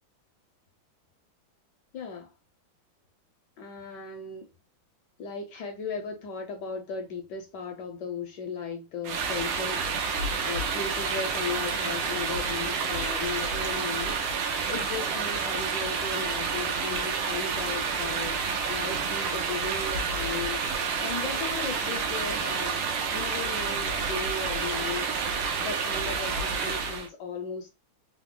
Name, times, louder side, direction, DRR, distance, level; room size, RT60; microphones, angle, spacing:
voice 1, 1.9-2.3 3.6-4.5 5.2-10.1 10.4-18.4 18.7-20.6 21.0-22.8 23.1-27.7, left 5 dB, 75° left, 1.0 m, -36 dB
sound 1, 9.0-27.1, right 5 dB, 85° right, 1.5 m, -29 dB
3.8 x 2.0 x 3.6 m
omnidirectional pair, 2.3 m